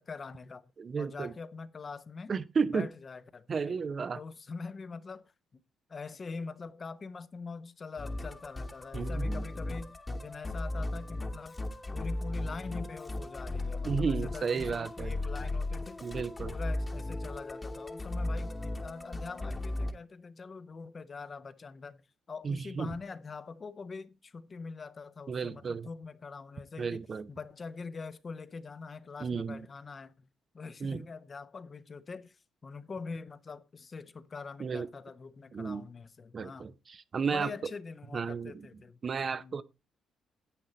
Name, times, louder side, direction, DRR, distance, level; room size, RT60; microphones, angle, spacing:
voice 1, 0.0-2.3 2.7-3.8 4.1-5.6 5.9-11.6 11.9-16.1 16.4-22.0 22.3-30.3 30.5-36.7 37.2-39.0 39.4-39.6, left 4 dB, 35° left, 0.9 m, -44 dB
voice 2, 0.8-1.3 2.3-2.9 3.5-4.2 8.9-9.4 13.8-15.1 16.0-16.5 22.4-22.9 25.3-25.9 26.8-27.3 29.2-29.7 30.8-31.0 34.6-34.9 35.5-35.9 36.3-37.5 38.1-38.7 39.0-39.6, right 5 dB, 45° right, 0.7 m, -33 dB
Musical instrument, 8.0-19.9, left 2 dB, 20° left, 1.3 m, -36 dB
10.0 x 8.0 x 4.3 m
cardioid pair, 90°, 0 cm